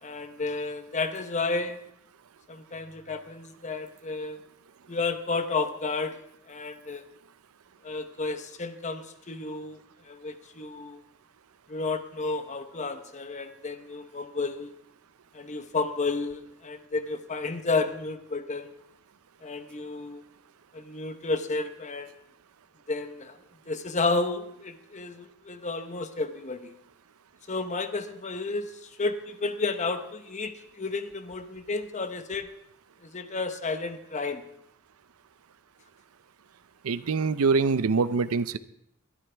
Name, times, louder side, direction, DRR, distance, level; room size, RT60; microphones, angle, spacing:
voice 1, 0.0-1.8 2.5-4.4 4.9-6.2 6.5-7.0 7.8-11.0 11.7-14.7 15.3-18.7 19.4-20.2 20.7-22.1 22.9-23.4 23.7-26.7 27.5-32.5 33.0-34.4, left 3 dB, 35° left, 9 dB, 0.9 m, -32 dB
voice 2, 36.8-38.6, right 4 dB, 85° right, 14 dB, 0.6 m, -24 dB
21.5 x 12.5 x 3.4 m, 0.78 s
head